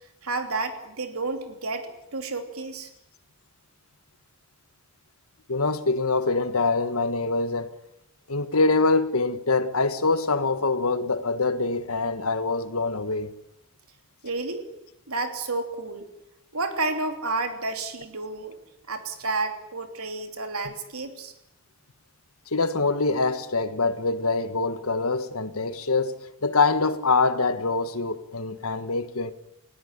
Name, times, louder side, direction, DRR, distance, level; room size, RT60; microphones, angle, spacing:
voice 1, 0.2-2.9 14.2-14.7 15.1-16.1 16.5-18.6 18.9-21.3, right 3 dB, 85° right, 3.1 m, -31 dB
voice 2, 5.5-7.7 8.3-13.3 22.5-26.2 26.4-29.3, left 3 dB, 80° left, 1.6 m, -24 dB
20.0 x 17.0 x 9.9 m
head